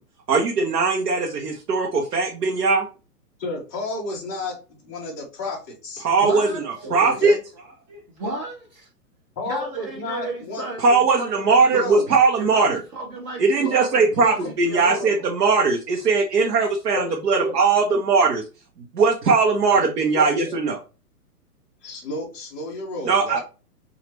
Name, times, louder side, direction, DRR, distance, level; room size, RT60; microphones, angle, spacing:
voice 1, 0.3-2.8 6.0-7.4 10.8-12.8 13.4-18.4 18.9-20.8 23.0-23.4, right 4 dB, 80° right, 0.9 m, -19 dB
voice 2, 3.4-6.1 7.1-7.4 9.4-10.6 11.7-12.1 13.6-13.8 14.8-15.1 16.9-17.6 19.7-19.9 20.1-20.6 21.8-23.4, left 2 dB, 15° left, 0.3 m, -31 dB
voice 3, 6.2-7.2 7.6-8.9 9.4-15.3, right 1 dB, 30° right, 0.6 m, -34 dB
3.1 x 2.4 x 3.0 m
hypercardioid pair, 130°, 47 cm